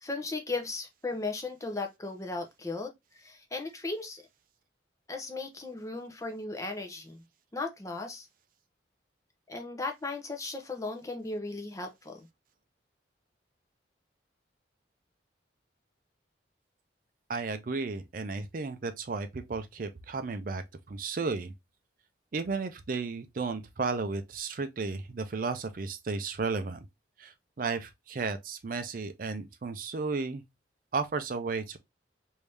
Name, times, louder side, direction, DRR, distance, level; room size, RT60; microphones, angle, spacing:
voice 1, 0.0-4.2 5.1-7.2 7.5-8.3 9.5-12.3, left 3 dB, 20° left, 0.6 m, -36 dB
voice 2, 17.3-21.5 22.3-26.9 27.2-30.4 30.9-31.8, right 4 dB, 50° right, 0.4 m, -34 dB
3.3 x 2.7 x 3.3 m
head